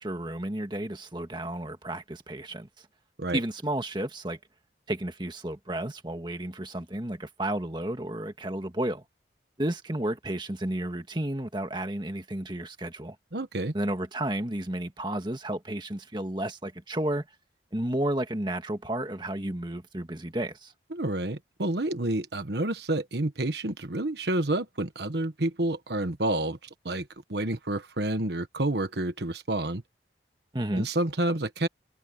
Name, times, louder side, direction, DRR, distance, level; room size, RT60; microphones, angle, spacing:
voice 1, 0.0-2.7 3.3-4.4 4.9-9.0 9.6-13.2 13.7-17.3 17.7-20.7 30.5-30.9, right 1 dB, 25° right, 1.7 m, -32 dB
voice 2, 13.3-13.7 20.9-26.6 26.8-29.8 30.7-31.7, right 1 dB, 65° right, 1.4 m, -29 dB
head